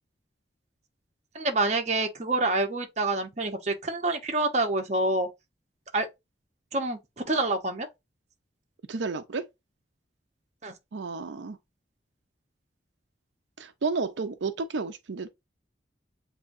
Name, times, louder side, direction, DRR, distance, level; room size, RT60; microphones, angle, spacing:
voice 1, 1.3-5.3 5.9-6.1 6.7-7.9 10.6-10.7, right 2 dB, 40° right, 0.8 m, -27 dB
voice 2, 8.9-9.4 10.9-11.6 13.6-15.3, right 4 dB, 80° right, 0.5 m, -31 dB
7.6 x 2.7 x 2.6 m
head